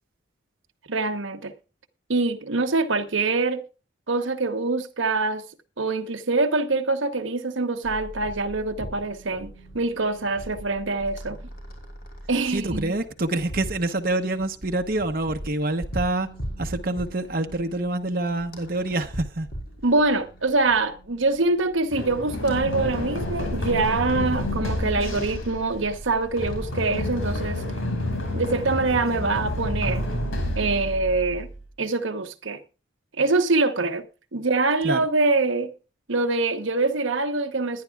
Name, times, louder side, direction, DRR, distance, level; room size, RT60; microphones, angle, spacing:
voice 1, 0.9-1.5 2.1-3.6 4.1-5.4 5.8-11.4 12.3-13.0 19.8-27.6 28.3-30.0 30.6-31.5 31.8-32.6 33.2-34.1 34.3-35.7 36.1-37.8, right 3 dB, 70° right, 1.0 m, -24 dB
sound 1, 7.8-27.1, equal, 50° left, 5.7 m, -41 dB
voice 2, 12.5-16.3 16.6-19.5 34.8-35.0, right 2 dB, 45° right, 0.9 m, -26 dB
Run, 21.9-31.7, left 1 dB, 85° left, 5.0 m, -29 dB
21.0 x 10.5 x 2.4 m
head